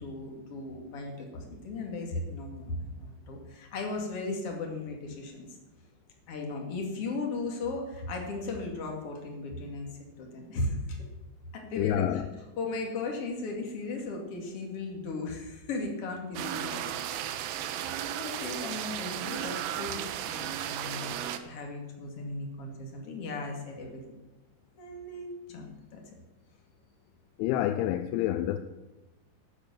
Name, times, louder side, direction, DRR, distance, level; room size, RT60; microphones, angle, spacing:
voice 1, 0.0-5.5 6.3-9.9 10.2-11.0 11.5-12.2 12.6-17.4 17.7-24.0 24.8-25.7 25.9-26.0, left 3 dB, 40° left, 2.4 m, -36 dB
voice 2, 11.8-12.3 27.4-28.6, left 12 dB, 90° left, 3.0 m, -28 dB
sound 1, 16.4-21.4, right 11 dB, 80° right, 2.6 m, -35 dB
13.0 x 8.7 x 7.1 m
omnidirectional pair, 5.4 m